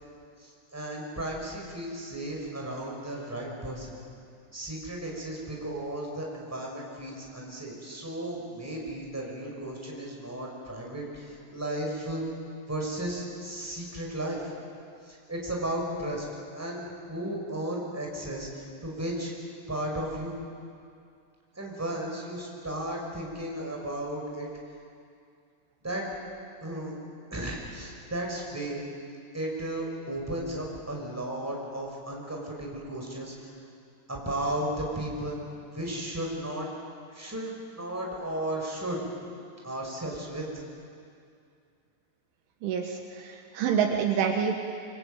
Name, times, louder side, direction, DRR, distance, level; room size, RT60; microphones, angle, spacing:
voice 1, 0.4-4.0 4.5-12.2 12.7-14.5 15.0-16.2 16.5-19.3 19.7-20.4 21.5-24.5 25.8-26.0 26.6-26.9 27.3-28.8 29.3-33.5 34.1-35.4 35.7-36.7 37.1-39.1 39.6-40.4, right 1 dB, 5° right, -1 dB, 5.0 m, -34 dB
voice 2, 42.6-44.5, right 7 dB, 75° right, 3 dB, 3.5 m, -27 dB
25.0 x 25.0 x 9.1 m, 2.4 s
omnidirectional pair, 6.0 m